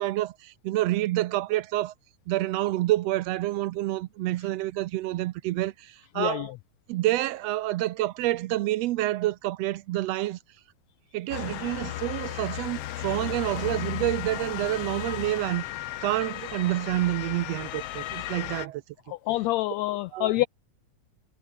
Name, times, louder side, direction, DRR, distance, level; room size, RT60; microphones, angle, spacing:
voice 1, 0.0-1.9 2.3-6.5 6.9-10.4 11.1-15.6 16.0-18.8 20.1-20.5, right 16 dB, 80° right, 1.5 m, -28 dB
voice 2, 6.2-6.5 19.1-20.5, left 17 dB, 90° left, 1.5 m, -26 dB
Motor vehicle (road) / Siren, 11.3-18.7, left 14 dB, 70° left, 1.5 m, -35 dB
omnidirectional pair, 3.6 m